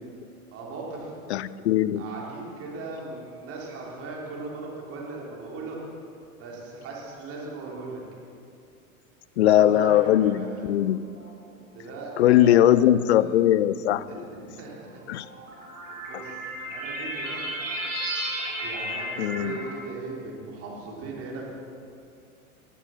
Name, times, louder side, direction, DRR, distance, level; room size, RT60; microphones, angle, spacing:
voice 1, 0.5-1.1 2.0-5.8 6.4-8.0 9.4-10.7 11.7-13.4 14.1-15.4 16.0-17.4 18.6-21.5, right 3 dB, 30° right, -2 dB, 3.6 m, -38 dB
voice 2, 1.3-2.0 9.4-10.4 10.6-11.0 12.2-14.1 15.1-15.2 19.2-19.5, left 12 dB, 50° left, 16 dB, 0.5 m, -20 dB
sound 1, 9.6-10.3 11.2-11.3 12.4-12.5 14.7-19.8, right 1 dB, 65° right, 4.0 m, -34 dB
18.5 x 8.1 x 5.7 m, 2.4 s
figure-of-eight pair, 90°, 43 cm